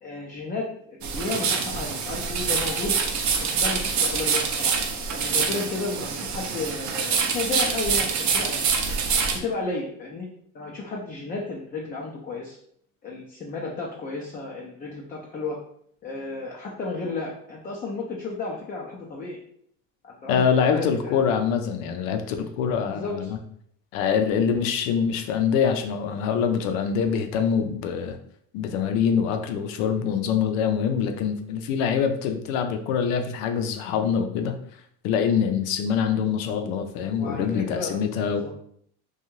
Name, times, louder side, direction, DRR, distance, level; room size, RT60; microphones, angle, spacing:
voice 1, 0.0-2.9 3.4-4.8 5.1-8.8 9.4-10.3 10.5-12.6 13.0-15.6 16.0-19.4 20.0-21.3 22.9-23.3 37.2-38.0 38.3-38.5, left 3 dB, 25° left, -2 dB, 0.5 m, -33 dB
sound 1, 1.0-9.4, right 5 dB, 50° right, 0.6 m, -25 dB
voice 2, 20.3-23.4 23.9-28.2 28.5-34.6 35.0-38.5, left 7 dB, 85° left, 6 dB, 0.6 m, -24 dB
2.6 x 2.3 x 3.0 m, 0.67 s
supercardioid pair, 100°, 39 cm